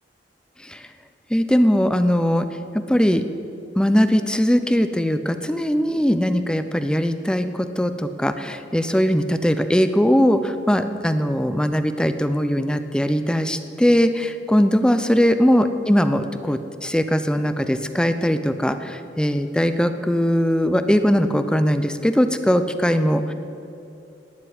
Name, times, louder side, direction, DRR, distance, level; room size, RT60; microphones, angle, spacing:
voice 1, 1.3-2.5 2.7-3.2 3.8-23.3, equal, 5° left, 9 dB, 0.7 m, -20 dB
18.0 x 7.5 x 9.6 m, 2.7 s
head